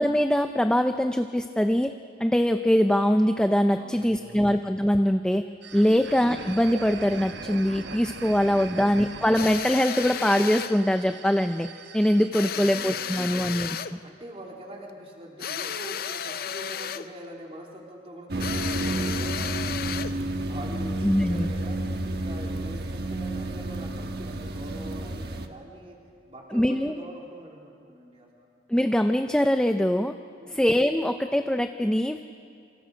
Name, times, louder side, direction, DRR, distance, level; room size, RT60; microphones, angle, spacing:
voice 1, 0.0-1.9 2.2-5.5 5.7-11.7 11.9-14.0 21.0-21.5 26.5-26.9 28.7-30.2 30.5-32.2, equal, 5° left, 7 dB, 0.5 m, -23 dB
voice 2, 3.7-4.5 5.9-6.1 12.4-13.5 14.0-19.8 20.5-26.0 26.3-28.5 30.4-30.6, right 1 dB, 35° right, -1 dB, 3.0 m, -44 dB
sound 1, 5.6-12.3, right 4 dB, 80° right, 1.1 m, -41 dB
sound 2, 9.3-10.8 12.3-14.0 15.4-17.1 18.4-20.2, left 8 dB, 55° left, 0.6 m, -33 dB
sound 3, 18.3-25.5, right 1 dB, 60° right, 1.3 m, -30 dB
27.5 x 25.5 x 5.1 m, 2.3 s
head